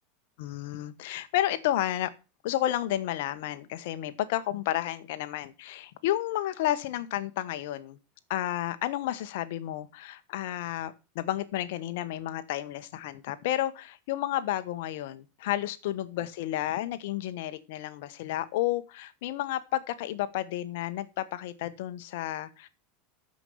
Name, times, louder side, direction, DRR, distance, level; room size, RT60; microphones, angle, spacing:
voice 1, 0.4-2.1 2.4-8.0 8.3-22.7, left 13 dB, 65° left, 13 dB, 1.2 m, -31 dB
12.5 x 5.4 x 7.0 m, 0.32 s
hypercardioid pair, 85°, 0 cm